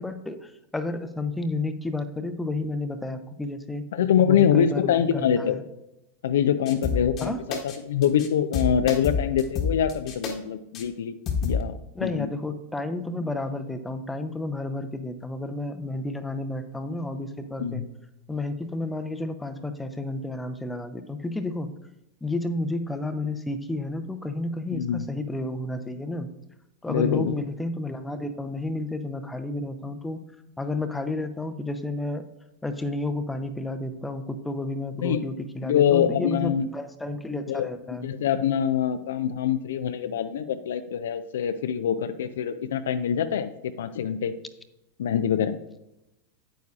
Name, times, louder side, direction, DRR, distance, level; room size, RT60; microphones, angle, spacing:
voice 1, 0.0-3.9 4.3-5.6 7.2-7.4 11.9-17.8 18.3-21.7 22.2-26.3 26.8-30.2 30.6-32.3 32.6-38.1, left 2 dB, 10° left, 9 dB, 0.7 m, -31 dB
voice 2, 3.9-5.6 6.2-11.2 11.4-12.3 17.6-17.9 24.7-25.1 26.9-27.3 35.0-35.2 35.6-36.7 37.5-37.7 38.0-44.3 45.0-45.6, left 8 dB, 60° left, 10 dB, 0.4 m, -24 dB
sound 1, 6.7-7.3 7.5-7.8 8.0-8.3 8.5-10.3 10.7-10.8 11.3-11.6, left 5 dB, 35° left, 1.2 m, -28 dB
9.3 x 9.0 x 2.4 m, 0.88 s
figure-of-eight pair, 90°, 0 cm